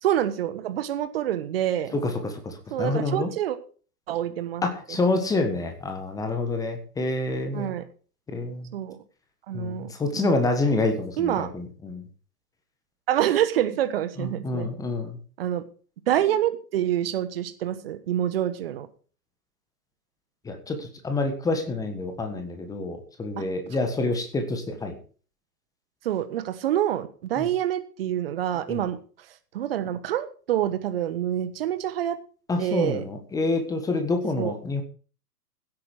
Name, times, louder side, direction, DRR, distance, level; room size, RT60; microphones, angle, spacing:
voice 1, 0.0-2.0 2.7-3.6 4.1-5.0 7.5-7.9 8.7-9.0 9.5-10.4 11.2-11.5 13.1-14.7 15.4-15.6 16.1-18.9 23.4-23.5 24.0-24.1 26.0-29.0 29.5-32.2 32.6-33.0 34.4-34.5, right 11 dB, 40° right, 11 dB, 1.4 m, -27 dB
voice 2, 1.9-3.3 4.6-7.7 8.3-8.7 9.5-12.0 14.2-15.2 20.4-25.0 27.4-27.5 28.7-28.8 32.5-34.8, left 2 dB, 5° left, 6 dB, 1.5 m, -27 dB
16.0 x 8.6 x 4.9 m, 0.40 s
figure-of-eight pair, 120°, 47 cm